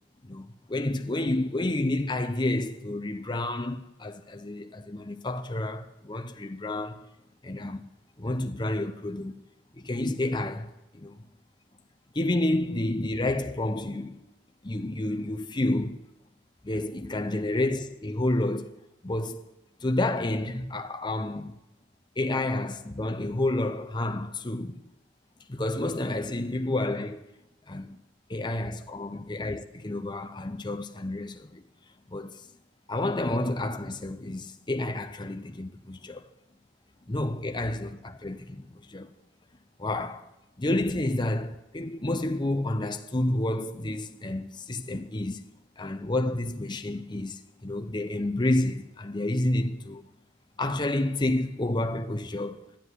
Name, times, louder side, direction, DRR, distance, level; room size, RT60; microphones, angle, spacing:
voice 1, 0.2-7.0 7.4-7.8 8.2-9.3 9.8-11.2 12.1-14.2 14.6-16.0 16.6-18.7 19.0-19.4 19.8-21.5 22.2-24.8 25.5-27.3 27.7-28.0 28.3-31.6 32.1-32.4 32.9-36.3 37.1-39.1 39.8-40.3 40.6-45.5 45.8-50.1 50.6-52.6, left 1 dB, 25° left, 0.8 m, -30 dB
12.5 x 10.0 x 9.5 m
head